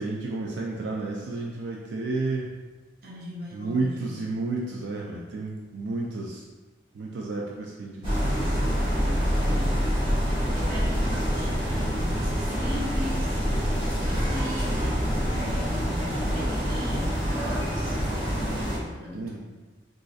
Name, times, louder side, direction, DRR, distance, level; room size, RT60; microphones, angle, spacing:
voice 1, 0.0-2.5 3.5-6.4 6.9-8.9 19.1-19.4, right 3 dB, 90° right, -2 dB, 0.4 m, -32 dB
voice 2, 3.0-4.2 9.3-9.8 10.5-13.4 13.9-18.0 18.2-19.4, equal, 55° right, -3 dB, 0.7 m, -40 dB
sound 1, 8.0-18.8, equal, 30° right, 1.0 m, -26 dB
3.8 x 2.5 x 2.4 m, 1.3 s
head